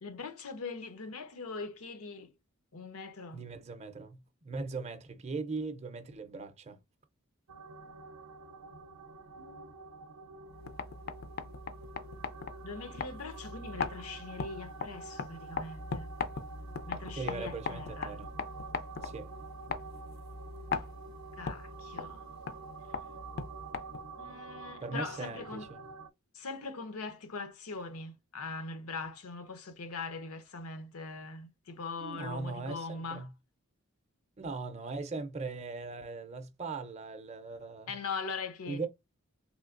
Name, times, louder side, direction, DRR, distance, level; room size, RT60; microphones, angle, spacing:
voice 1, 0.0-2.3 2.7-3.4 9.4-9.7 12.6-16.1 16.9-18.2 21.4-22.3 24.2-25.7 26.3-33.3 37.9-38.9, left 4 dB, 85° left, 0.7 m, -41 dB
voice 2, 3.3-6.8 17.1-18.3 19.0-19.3 24.8-25.8 32.0-33.3 34.4-37.9 38.7-38.9, right 3 dB, 30° right, 0.5 m, -39 dB
sound 1, 7.5-26.1, right 4 dB, 90° right, 0.5 m, -48 dB
sound 2, 10.5-24.2, left 5 dB, 45° left, 0.4 m, -40 dB
3.1 x 3.1 x 2.5 m
head